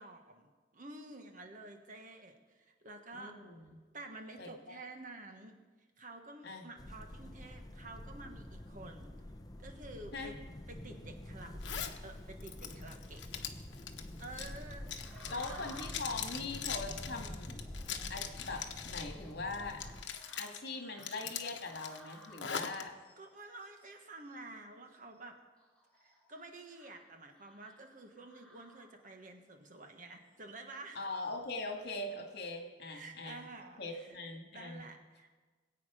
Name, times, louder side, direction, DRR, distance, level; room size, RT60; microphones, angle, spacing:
voice 1, 0.0-3.4 3.9-5.6 6.0-9.1 9.6-10.3 10.7-13.2 14.2-15.6 23.2-25.4 26.0-31.0 32.9-34.2 34.5-35.4, right 2 dB, 45° right, 4 dB, 1.4 m, -50 dB
voice 2, 3.1-3.8 4.4-4.8 6.4-6.7 10.1-10.3 15.3-17.6 18.1-19.8 20.4-22.9 31.0-33.4 33.8-34.8, left 3 dB, 65° left, 2 dB, 2.0 m, -41 dB
sound 1, 6.8-20.0, left 1 dB, 20° left, 0.8 m, -47 dB
Zipper (clothing), 11.6-12.0 12.4-19.2 19.5-20.6 21.0-22.8, left 8 dB, 80° left, 1.0 m, -42 dB
sound 2, 15.0-29.3 29.8-30.4 30.9-31.2 31.7-32.4 32.8-34.0, equal, 5° left, 2.4 m, -60 dB
21.0 x 8.4 x 5.0 m, 1.3 s
head